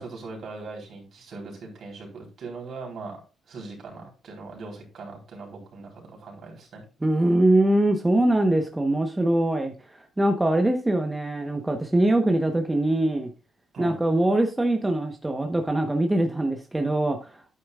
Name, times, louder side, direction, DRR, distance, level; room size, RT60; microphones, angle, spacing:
voice 1, 0.0-3.2 3.5-6.8 13.7-13.9, right 3 dB, 60° right, 3.9 m, -40 dB
voice 2, 7.0-13.3 13.8-17.5, right 1 dB, 15° right, 1.1 m, -23 dB
9.5 x 8.9 x 2.4 m
cardioid pair, 90°, 0 cm